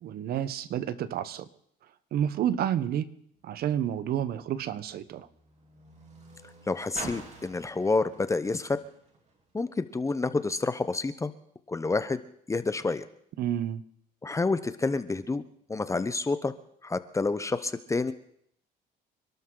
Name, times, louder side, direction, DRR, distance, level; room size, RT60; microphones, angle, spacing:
voice 1, 0.0-1.5 2.1-3.1 3.4-5.3 13.4-13.8, right 10 dB, 65° right, 15 dB, 1.0 m, -30 dB
Car, 3.3-9.9 10.7-10.8, right 3 dB, 40° right, 3.3 m, -48 dB
voice 2, 6.7-8.8 9.5-11.3 11.7-12.2 12.5-13.0 14.2-15.4 15.7-16.5 16.8-18.1, left 3 dB, 15° left, 12 dB, 0.8 m, -28 dB
26.5 x 12.5 x 3.9 m, 0.69 s
cardioid pair, 110°, 17 cm